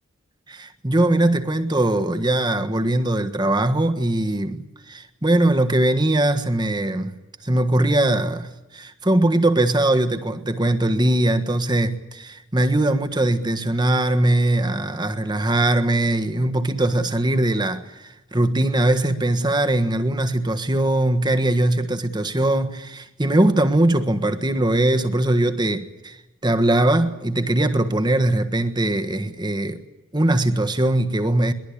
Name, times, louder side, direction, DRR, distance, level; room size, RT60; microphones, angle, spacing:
voice 1, 0.5-7.1 7.4-26.2 26.4-29.8 30.1-31.5, right 1 dB, 20° right, 1.4 m, -21 dB
22.5 x 21.0 x 8.5 m
head